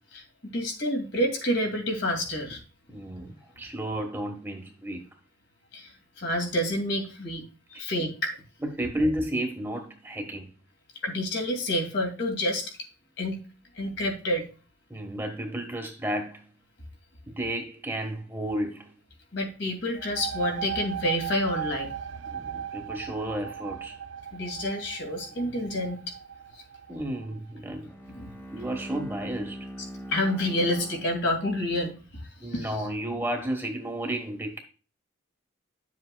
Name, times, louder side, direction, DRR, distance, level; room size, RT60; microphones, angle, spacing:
voice 1, 0.1-2.6 5.7-8.4 11.0-12.7 13.2-13.4 13.8-14.5 19.3-21.9 24.3-26.1 28.2-28.3 30.1-32.7, left 1 dB, 60° left, 2.3 m, -29 dB
voice 2, 2.9-5.0 7.7-7.8 8.6-10.5 14.9-16.5 17.3-18.9 22.3-24.0 26.9-27.9 28.5-29.7 32.4-34.6, right 1 dB, 10° right, 1.2 m, -32 dB
sound 1, 19.9-27.4, right 8 dB, 70° right, 0.4 m, -37 dB
Bowed string instrument, 27.8-31.8, right 1 dB, 10° left, 1.0 m, -42 dB
10.5 x 7.5 x 2.2 m
head